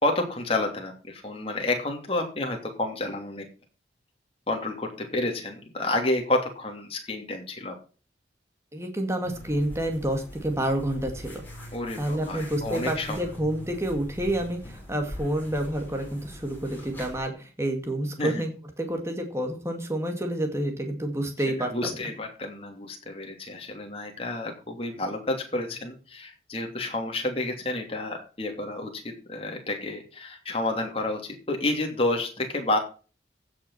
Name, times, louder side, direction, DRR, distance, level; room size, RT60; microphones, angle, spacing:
voice 1, 0.0-3.5 4.5-7.7 11.7-13.2 18.2-18.4 21.6-32.8, left 2 dB, 30° left, 2 dB, 2.9 m, -30 dB
voice 2, 8.7-11.4 11.9-22.0, right 1 dB, 15° right, 4 dB, 2.2 m, -29 dB
sound 1, 9.2-17.2, left 1 dB, 10° left, 5.5 m, -42 dB
15.5 x 6.4 x 5.8 m, 0.37 s
head